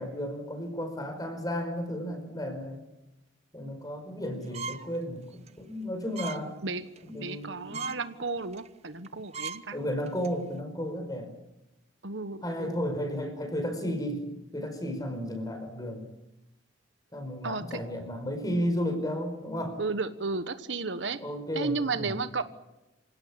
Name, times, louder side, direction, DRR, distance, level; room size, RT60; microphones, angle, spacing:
voice 1, 0.0-2.8 3.5-6.5 7.1-7.9 9.7-11.3 12.4-14.3 14.5-16.1 17.1-19.8 21.2-22.2, equal, 20° left, 7 dB, 5.1 m, -33 dB
sound 1, 4.5-4.9 5.3-5.5 6.1-6.4 6.8-7.1 7.4-7.5 7.7-8.0 8.5-8.7 9.0-9.1 9.3-9.6 10.1-10.3, right 4 dB, 35° right, 0.8 m, -37 dB
voice 2, 7.2-9.8 12.0-12.8 17.4-17.8 19.8-21.2 21.5-22.4, right 4 dB, 70° right, 11 dB, 1.3 m, -33 dB
27.0 x 17.5 x 8.8 m, 0.96 s
head